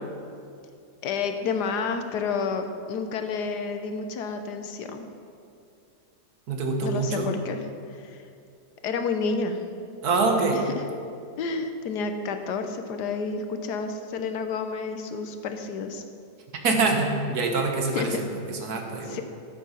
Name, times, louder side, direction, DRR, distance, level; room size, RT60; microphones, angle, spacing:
voice 1, 1.0-5.1 6.8-7.6 8.1-8.2 8.8-9.6 11.4-16.0 17.9-18.2 19.1-19.2, left 4 dB, 80° left, 7 dB, 1.4 m, -30 dB
voice 2, 6.5-7.4 10.0-10.6 16.6-19.2, right 3 dB, 70° right, 3 dB, 1.7 m, -25 dB
12.0 x 7.8 x 5.6 m, 2.5 s
omnidirectional pair, 1.7 m